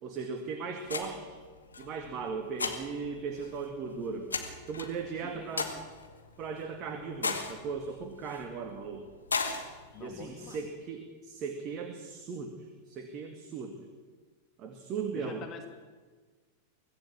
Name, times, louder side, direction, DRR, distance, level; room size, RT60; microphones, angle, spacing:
voice 1, 0.0-1.3 1.8-4.3 4.7-5.7 6.4-9.0 10.0-13.8 14.6-15.5, right 5 dB, 35° right, 5 dB, 2.3 m, -38 dB
sound 1, 0.8-10.6, left 4 dB, 75° left, 2.2 m, -39 dB
voice 2, 5.2-5.8 9.9-10.7 15.1-15.7, left 6 dB, 30° left, 5 dB, 2.6 m, -46 dB
25.0 x 17.0 x 7.5 m, 1.4 s
figure-of-eight pair, 90°, 0 cm